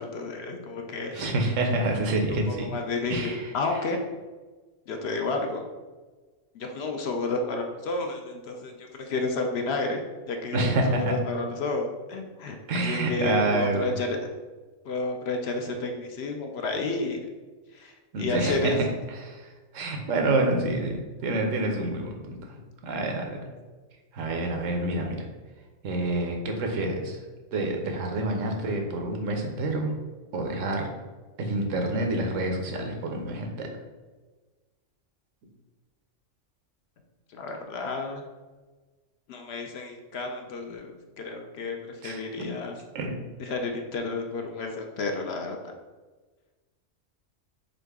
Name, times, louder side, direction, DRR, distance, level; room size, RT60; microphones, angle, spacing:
voice 1, 0.0-1.3 2.5-4.0 4.9-5.6 6.5-10.0 10.3-14.2 14.9-17.2 17.7-18.8 37.3-38.2 39.3-42.7 43.4-45.6, left 3 dB, 65° left, 3 dB, 0.7 m, -31 dB
voice 2, 1.1-2.7 3.1-3.8 10.5-11.1 12.7-13.9 18.1-18.8 19.1-23.4 24.1-25.3 25.8-27.2 27.5-29.9 30.3-30.9 31.4-33.7 42.0-42.5 42.9-43.1, right 2 dB, 80° right, 3 dB, 1.1 m, -28 dB
4.0 x 3.7 x 3.5 m, 1.3 s
omnidirectional pair, 1.3 m